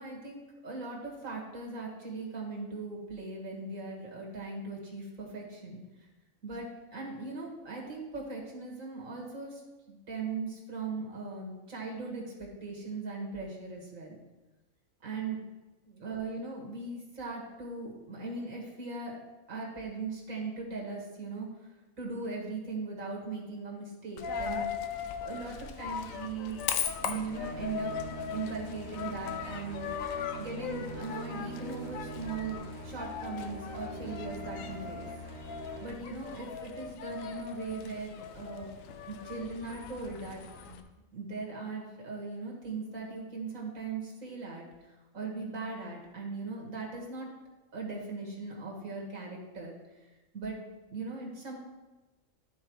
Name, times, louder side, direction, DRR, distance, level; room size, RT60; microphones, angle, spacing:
voice 1, 0.0-5.8 6.4-9.6 9.9-14.2 15.0-15.4 15.9-19.2 19.5-21.5 22.0-24.7 25.2-26.6 27.0-27.9 28.3-29.9 30.4-35.1 35.8-38.7 39.1-40.4 40.7-40.8 41.1-47.3 47.7-49.7 50.3-50.6 50.9-51.6, right 4 dB, 85° right, -2 dB, 2.2 m, -39 dB
Coin (dropping), 24.2-40.8, left 7 dB, 85° left, 1.0 m, -39 dB
sound 1, 27.3-35.8, right 1 dB, 60° right, 1.2 m, -43 dB
13.0 x 4.5 x 3.1 m, 1.1 s
omnidirectional pair, 1.4 m